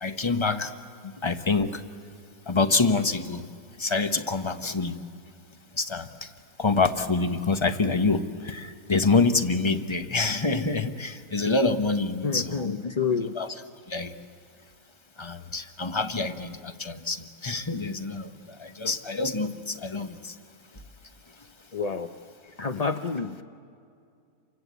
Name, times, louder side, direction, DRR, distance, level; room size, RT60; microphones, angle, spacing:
voice 1, 0.0-0.7 1.2-1.7 2.5-3.4 3.8-5.0 5.8-6.1 6.6-12.7 13.3-13.6 13.9-14.1 15.2-18.3 18.6-20.2, left 3 dB, 20° left, 8 dB, 0.9 m, -26 dB
voice 2, 12.2-13.3 21.7-22.1 22.6-23.4, left 5 dB, 40° left, 5 dB, 0.5 m, -28 dB
29.5 x 24.5 x 8.2 m, 2.4 s
omnidirectional pair, 1.7 m